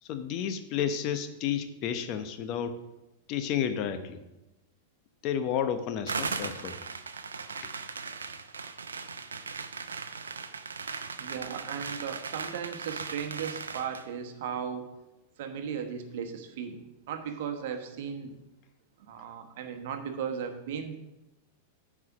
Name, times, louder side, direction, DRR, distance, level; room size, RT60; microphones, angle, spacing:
voice 1, 0.0-2.8 3.3-4.2 5.2-6.8 7.6-7.7, left 8 dB, 45° left, 8 dB, 0.9 m, -31 dB
sound 1, 6.1-14.1, right 5 dB, 90° right, 0.6 m, -38 dB
voice 2, 11.2-14.9 15.4-16.8 17.1-18.3 19.0-21.0, right 7 dB, 65° right, 6 dB, 1.1 m, -36 dB
9.5 x 4.9 x 5.8 m, 0.98 s
hypercardioid pair, 105°, 0 cm